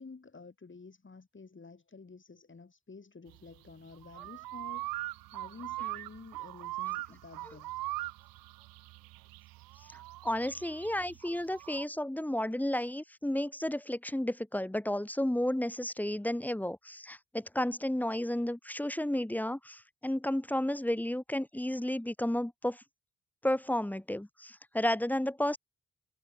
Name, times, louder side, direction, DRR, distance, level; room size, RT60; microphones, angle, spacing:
voice 1, 0.0-4.9 5.3-7.7, left 4 dB, 35° left, 7.5 m, -50 dB
sound 1, 3.3-11.9, right 19 dB, 75° right, 2.1 m, -41 dB
voice 2, 9.9-22.8 23.4-25.6, left 1 dB, 5° left, 1.1 m, -32 dB
hypercardioid pair, 40°, 35 cm